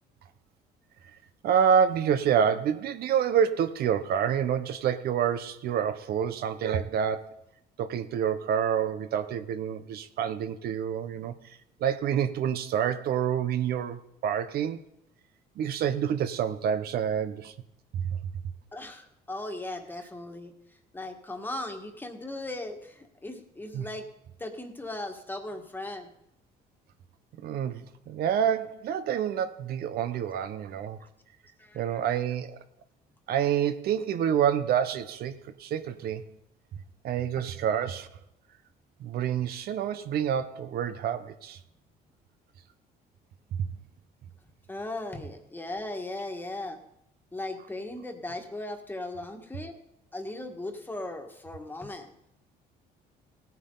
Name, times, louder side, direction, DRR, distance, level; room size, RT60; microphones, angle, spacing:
voice 1, 1.4-7.4 7.8-14.8 15.6-17.5 17.9-18.2 23.7-23.9 27.4-31.0 31.7-32.6 33.3-36.3 37.0-38.1 39.0-41.6 43.6-43.7, right 8 dB, 65° right, 0.9 m, -28 dB
voice 2, 18.7-20.5 20.9-24.1 24.4-26.1 31.6-32.2 44.7-46.8 47.3-49.7 50.1-52.1, left 2 dB, 10° left, 1.7 m, -37 dB
17.5 x 9.4 x 3.9 m
cardioid pair, 110°, 17 cm